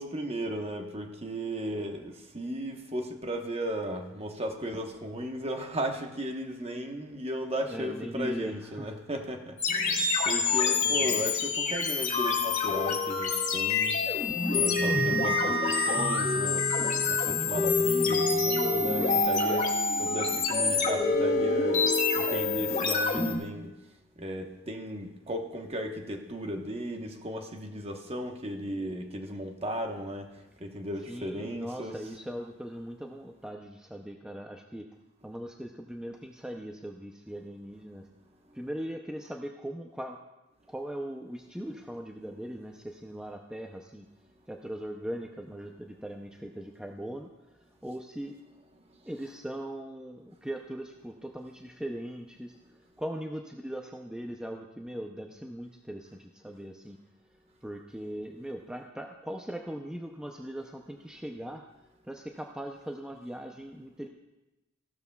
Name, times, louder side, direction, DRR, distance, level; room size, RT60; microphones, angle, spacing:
voice 1, 0.0-23.7 24.2-30.3 30.6-32.0, right 1 dB, 30° right, 3 dB, 1.1 m, -36 dB
voice 2, 7.7-8.9 10.8-11.2 20.7-21.1 31.1-34.9 35.2-38.0 38.5-40.2 40.7-44.1 44.5-47.3 47.8-48.3 49.1-52.5 53.0-57.0 57.6-61.6 62.1-64.1, right 1 dB, 5° right, 2 dB, 0.5 m, -39 dB
sound 1, 9.6-23.3, left 4 dB, 40° left, 2.3 m, -26 dB
15.5 x 12.5 x 2.3 m, 1.0 s
head